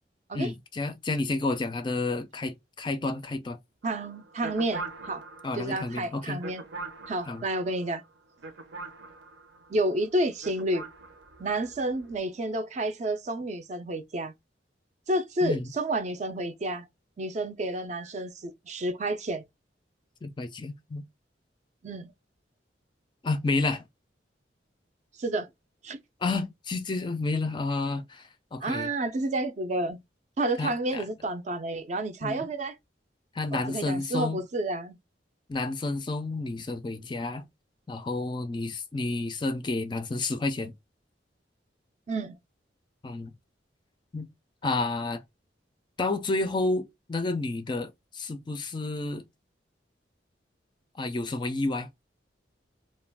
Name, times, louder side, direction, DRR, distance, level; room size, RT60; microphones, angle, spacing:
voice 1, 0.3-3.6 5.4-6.4 7.3-7.4 15.4-15.7 20.2-21.0 23.2-23.8 26.2-28.9 30.6-31.0 32.2-32.5 33.3-34.4 35.5-37.4 37.9-40.7 43.0-43.3 44.1-44.3 44.6-45.2 46.0-49.2 51.0-51.9, left 3 dB, 25° left, 0.4 m, -30 dB
voice 2, 3.8-5.2 5.5-6.6 7.1-8.0 9.7-10.8 11.4-14.3 15.1-16.9 17.2-19.4 21.8-22.1 25.2-25.5 25.8-26.0 28.6-30.0 30.4-32.7 33.5-35.0 42.1-42.4, right 1 dB, 40° right, 0.4 m, -30 dB
sound 1, 3.8-10.0 10.4-12.2, right 3 dB, 80° right, 0.7 m, -43 dB
2.4 x 2.2 x 3.3 m
head